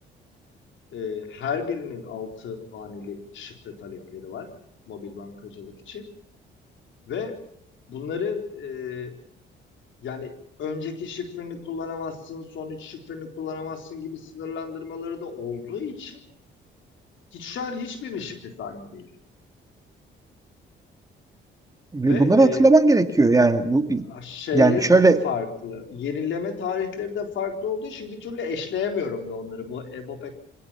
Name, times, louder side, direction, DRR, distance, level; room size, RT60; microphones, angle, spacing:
voice 1, 0.9-4.5 4.9-6.1 7.1-7.4 7.9-9.2 10.0-16.2 17.3-19.1 22.0-22.7 24.0-30.4, left 6 dB, 75° left, 4 dB, 4.1 m, -32 dB
voice 2, 21.9-24.0 24.5-25.2, right 2 dB, 15° right, 7 dB, 2.0 m, -17 dB
26.0 x 18.0 x 5.8 m, 0.70 s
cardioid pair, 90°, 20 cm